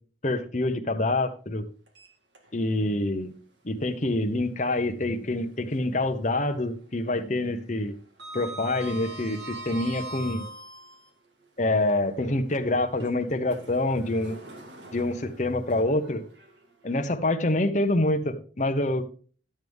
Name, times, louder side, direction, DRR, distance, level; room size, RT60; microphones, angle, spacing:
voice 1, 0.2-1.6 2.5-3.3 3.6-7.9 8.3-10.5 11.6-14.4 14.9-16.2 16.8-19.1, left 2 dB, 40° left, 6 dB, 1.0 m, -26 dB
Sliding door, 1.9-2.8 3.2-3.3 5.0-6.1 6.4-6.7 7.0-11.1 11.8-17.0, right 2 dB, 65° right, 1.9 m, -43 dB
12.5 x 7.9 x 3.6 m, 0.41 s
head